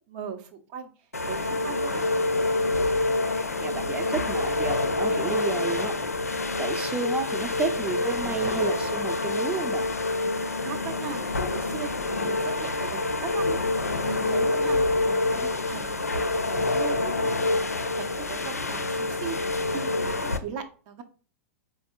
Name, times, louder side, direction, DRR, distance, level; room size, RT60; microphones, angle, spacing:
voice 1, 0.1-0.9 1.3-2.0 10.6-14.8 15.1-21.0, right 7 dB, 45° right, 6 dB, 0.8 m, -39 dB
sound 1, 1.1-20.4, left 2 dB, 90° left, 0.5 m, -27 dB
voice 2, 3.5-5.9 6.6-9.9, right 4 dB, 15° right, 6 dB, 0.7 m, -31 dB
4.6 x 4.3 x 2.2 m, 0.41 s
figure-of-eight pair, 100°, 8 cm